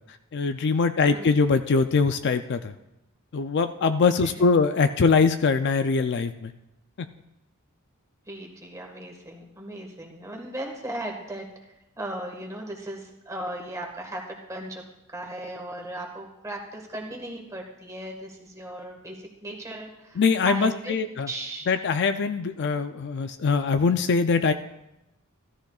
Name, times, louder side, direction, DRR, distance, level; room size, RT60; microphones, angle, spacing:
voice 1, 0.3-2.7 3.3-6.5 20.2-21.3 21.7-24.5, left 4 dB, 50° left, 9 dB, 0.4 m, -22 dB
voice 2, 1.0-1.3 4.2-4.4 8.3-11.5 12.0-14.8 15.1-20.9 21.3-21.6, right 1 dB, 15° right, 0 dB, 1.6 m, -37 dB
15.5 x 13.0 x 2.4 m, 0.92 s
head